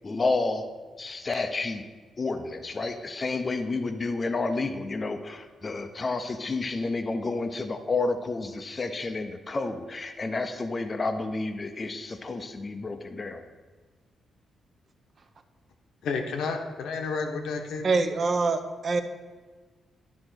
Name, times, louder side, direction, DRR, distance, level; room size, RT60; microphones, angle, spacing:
voice 1, 0.0-0.6 1.0-1.8 2.2-13.4, left 3 dB, 25° left, 7 dB, 0.6 m, -30 dB
voice 2, 16.0-18.0, left 4 dB, 80° left, 4 dB, 1.1 m, -31 dB
voice 3, 17.8-19.0, right 3 dB, 35° right, 8 dB, 0.6 m, -25 dB
11.5 x 3.9 x 6.1 m, 1.4 s
wide cardioid pair, 160°, 0 cm